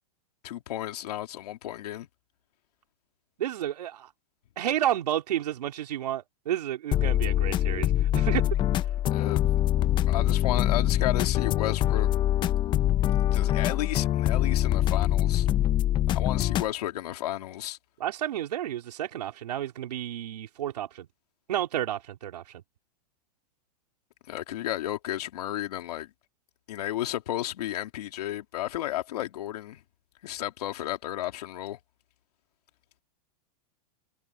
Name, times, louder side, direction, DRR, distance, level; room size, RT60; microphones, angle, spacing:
voice 1, 0.4-2.1 9.1-9.5 10.1-12.1 13.3-15.5 16.1-17.8 24.3-26.1 26.7-29.8 30.2-31.8, left 13 dB, 75° left, 3.0 m, -33 dB
voice 2, 3.4-4.1 4.6-8.5 18.0-21.1 21.5-22.6, right 11 dB, 85° right, 3.8 m, -31 dB
sound 1, 6.9-16.7, left 12 dB, 25° left, 0.8 m, -24 dB
supercardioid pair, 150°, 20 cm